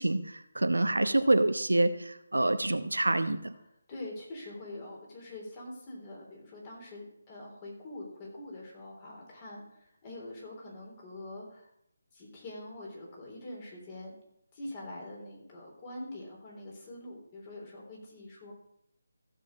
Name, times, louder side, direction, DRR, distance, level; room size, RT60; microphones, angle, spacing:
voice 1, 0.0-3.5, right 2 dB, 85° right, 10 dB, 0.9 m, -27 dB
voice 2, 3.9-11.7 12.1-14.1 14.5-18.5, left 1 dB, 30° left, -2 dB, 3.6 m, -44 dB
15.0 x 6.5 x 5.1 m, 0.78 s
figure-of-eight pair, 155°, 0 cm